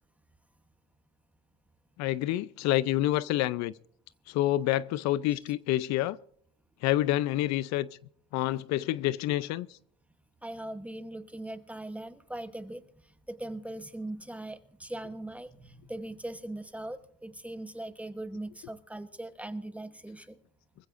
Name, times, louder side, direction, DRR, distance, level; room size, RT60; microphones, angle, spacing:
voice 1, 2.0-3.7 4.3-6.2 6.8-7.9 8.3-9.7, left 14 dB, 60° left, 0.5 m, -28 dB
voice 2, 10.4-12.8 13.3-20.4, right 1 dB, 5° right, 1.0 m, -40 dB
25.5 x 15.5 x 2.5 m
supercardioid pair, 115°, 31 cm